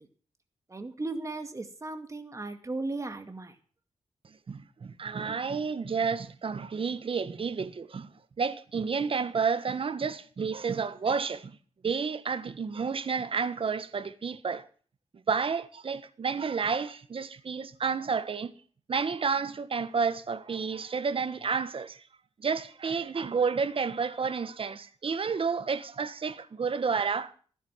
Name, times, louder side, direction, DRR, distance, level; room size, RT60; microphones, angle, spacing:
voice 1, 0.7-3.5, right 2 dB, 25° right, 2.2 m, -36 dB
voice 2, 4.5-11.6 11.8-14.7 15.3-18.5 18.9-22.0 22.4-27.3, right 5 dB, 50° right, 1.4 m, -30 dB
16.5 x 10.5 x 5.8 m
wide cardioid pair, 130°, 12 cm